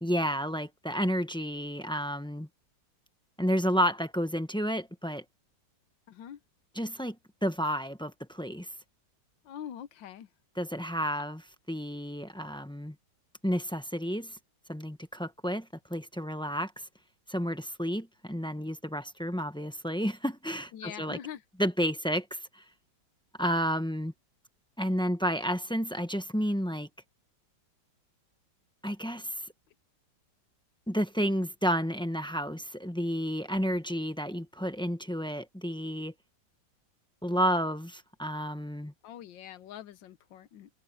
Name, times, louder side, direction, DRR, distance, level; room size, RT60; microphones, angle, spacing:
voice 1, 0.0-2.5 3.4-5.2 6.7-7.2 7.4-8.7 10.6-11.4 11.7-12.9 13.4-14.4 14.7-16.9 17.3-21.2 21.6-22.6 23.4-24.1 24.8-26.9 28.8-29.5 30.9-36.1 37.2-38.9, equal, 5° left, 0.6 m, -31 dB
voice 2, 6.1-6.4 9.4-10.3 20.7-21.4 39.0-40.7, left 10 dB, 90° left, 1.6 m, -43 dB
omnidirectional pair, 2.0 m